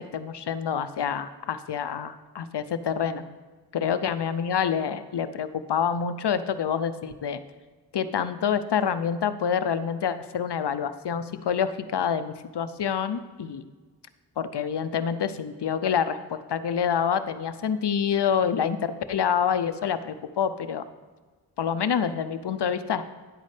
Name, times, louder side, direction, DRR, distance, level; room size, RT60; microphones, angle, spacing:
voice 1, 0.1-3.2 3.7-7.4 7.9-13.6 14.4-20.8 21.6-23.0, left 7 dB, 75° left, 12 dB, 0.6 m, -27 dB
10.0 x 8.2 x 3.3 m, 1.4 s
wide cardioid pair, 50°, 41 cm